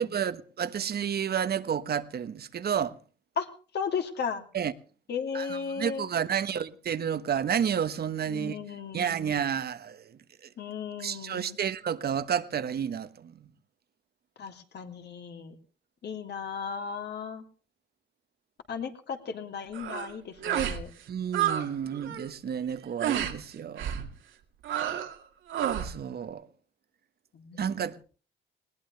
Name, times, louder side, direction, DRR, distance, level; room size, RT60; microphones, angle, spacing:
voice 1, 0.0-3.0 4.5-4.7 5.3-8.6 8.9-10.2 11.0-13.5 21.1-24.1 25.8-26.5 27.6-28.0, right 8 dB, 50° right, 1.2 m, -31 dB
voice 2, 3.7-4.4 5.1-6.1 8.3-9.2 10.6-11.6 14.4-15.5 16.0-17.5 18.7-20.9 27.3-27.7, left 6 dB, 60° left, 3.0 m, -35 dB
sound 1, 19.7-20.1 20.4-20.8 21.1-21.7 21.9-22.3 23.0-23.3 23.8-24.1 24.6-25.1 25.5-25.9, right 10 dB, 80° right, 2.2 m, -30 dB
20.0 x 19.0 x 3.4 m
cardioid pair, 90°, 20 cm